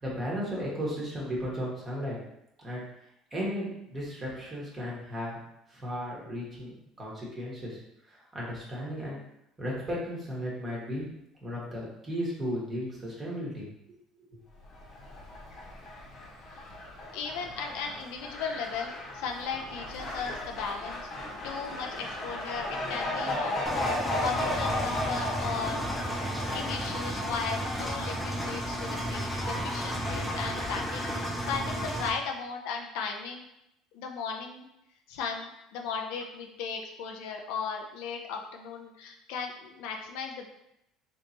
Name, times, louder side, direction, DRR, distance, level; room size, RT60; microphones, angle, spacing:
voice 1, 0.0-2.2 2.6-2.8 3.3-5.4 5.7-6.7 7.0-7.8 8.1-9.2 9.6-11.0 11.4-13.6, equal, 25° right, -4 dB, 1.2 m, -35 dB
Fowl, 14.6-32.0, left 1 dB, 40° left, 1.0 m, -36 dB
voice 2, 17.1-21.0 21.4-25.8 26.4-33.5 33.9-34.7 35.1-40.5, left 5 dB, 80° left, 2 dB, 0.4 m, -36 dB
Engine, 23.7-32.1, equal, 5° right, 0.5 m, -33 dB
3.4 x 3.1 x 2.7 m, 0.82 s
cardioid pair, 125°, 0 cm